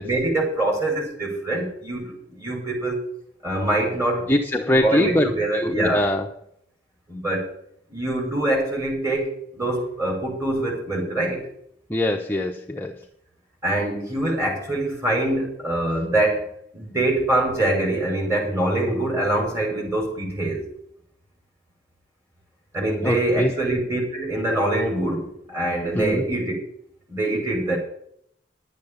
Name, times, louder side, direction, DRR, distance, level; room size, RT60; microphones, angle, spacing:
voice 1, 0.0-3.0 3.4-4.3 4.7-6.0 7.1-7.5 7.9-11.5 13.6-20.6 22.7-26.5 27.1-27.8, right 1 dB, 15° right, -1 dB, 5.2 m, -24 dB
voice 2, 4.3-6.3 11.9-13.0 23.0-23.5 25.9-26.2, left 1 dB, 10° left, 1 dB, 0.9 m, -23 dB
12.0 x 8.3 x 7.1 m, 0.69 s
head